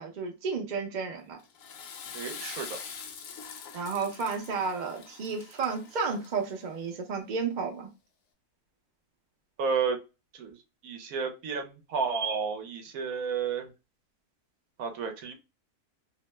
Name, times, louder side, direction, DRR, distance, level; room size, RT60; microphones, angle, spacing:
voice 1, 0.0-1.4 3.7-7.9, right 5 dB, 50° right, 0.5 m, -32 dB
Water / Toilet flush, 1.4-6.6, left 6 dB, 65° left, 1.0 m, -44 dB
voice 2, 2.1-2.8 9.6-10.0 10.3-10.6 10.8-13.7 14.8-15.3, right 5 dB, 70° right, 1.0 m, -31 dB
2.8 x 2.1 x 3.2 m
omnidirectional pair, 1.6 m